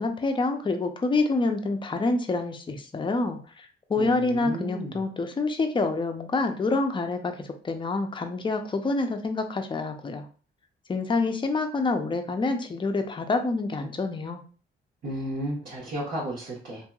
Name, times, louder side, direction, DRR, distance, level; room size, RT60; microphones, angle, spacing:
voice 1, 0.0-10.3 10.9-14.4, left 3 dB, 25° left, 6 dB, 0.5 m, -27 dB
voice 2, 4.0-4.9 15.0-16.9, right 1 dB, 60° right, -7 dB, 1.3 m, -33 dB
2.9 x 2.6 x 2.3 m, 0.39 s
cardioid pair, 85°, 21 cm